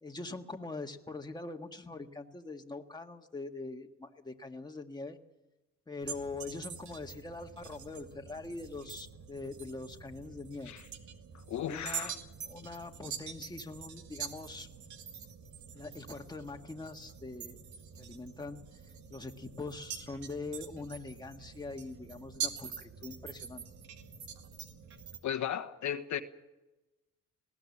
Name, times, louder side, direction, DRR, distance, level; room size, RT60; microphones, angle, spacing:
voice 1, 0.0-5.2 5.9-10.7 11.6-12.1 12.5-14.7 15.7-17.6 18.0-18.7 19.1-23.6, left 3 dB, 15° left, 1.7 m, -43 dB
sound 1, 6.0-25.2, right 7 dB, 70° right, 2.2 m, -45 dB
voice 2, 11.5-12.1 25.2-26.2, left 10 dB, 70° left, 1.4 m, -35 dB
20.0 x 17.0 x 8.6 m
cardioid pair, 90°, 30 cm